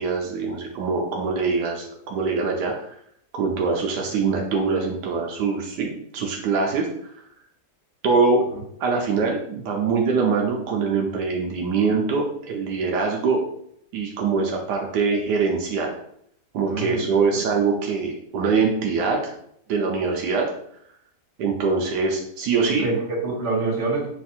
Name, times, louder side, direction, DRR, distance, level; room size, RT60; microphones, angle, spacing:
voice 1, 0.0-2.9 3.3-7.1 8.0-8.4 8.8-13.4 13.9-15.9 16.5-19.3 19.7-20.5 21.4-22.9, right 4 dB, 80° right, 0 dB, 1.2 m, -23 dB
voice 2, 16.7-17.5 22.7-24.1, right 3 dB, 45° right, -3 dB, 1.4 m, -27 dB
4.4 x 2.4 x 4.2 m, 0.69 s
omnidirectional pair, 1.8 m